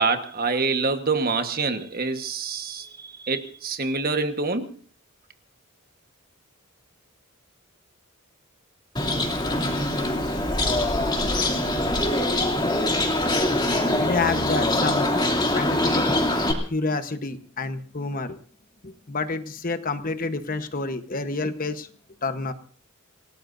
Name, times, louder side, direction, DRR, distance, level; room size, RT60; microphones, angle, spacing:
voice 1, 0.0-4.7, right 4 dB, 45° right, 8 dB, 1.4 m, -26 dB
Bird, 9.0-16.5, left 1 dB, 20° left, 2.9 m, -23 dB
voice 2, 14.0-15.1 15.4-16.0 16.7-18.4 18.8-21.9 22.2-22.5, left 3 dB, 40° left, 9 dB, 1.1 m, -28 dB
28.0 x 18.0 x 2.7 m, 0.42 s
head